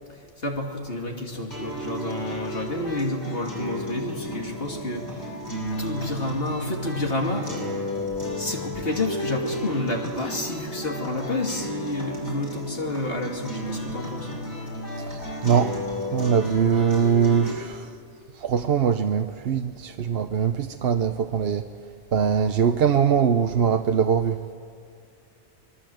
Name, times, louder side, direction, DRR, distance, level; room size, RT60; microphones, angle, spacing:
voice 1, 0.4-5.4 5.8-7.5 8.4-14.3, left 2 dB, 60° left, 0 dB, 2.7 m, -29 dB
sound 1, 1.5-17.5, equal, 40° left, 7.2 m, -33 dB
voice 2, 15.0-15.8 16.1-17.9 18.4-21.7 22.1-24.4, right 7 dB, 65° right, 7 dB, 1.0 m, -22 dB
25.0 x 20.5 x 7.8 m, 2.3 s
omnidirectional pair, 1.1 m